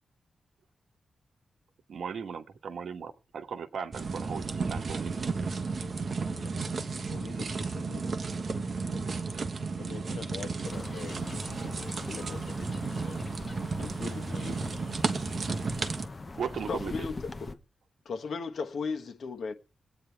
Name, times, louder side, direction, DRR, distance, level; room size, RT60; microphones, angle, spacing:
voice 1, 1.9-5.3 16.4-16.9, right 6 dB, 75° right, 1.3 m, -37 dB
sound 1, 3.9-16.1, right 4 dB, 45° right, 1.2 m, -33 dB
voice 2, 6.3-7.5 7.7-9.1 9.8-12.7 13.0-13.3 13.8-14.7, left 6 dB, 85° left, 1.2 m, -45 dB
sound 2, 10.7-17.6, left 3 dB, 25° left, 1.0 m, -42 dB
voice 3, 16.7-17.1 17.4-17.5 18.0-19.5, left 4 dB, 65° left, 1.4 m, -34 dB
22.0 x 9.1 x 3.4 m
wide cardioid pair, 150°, 0 cm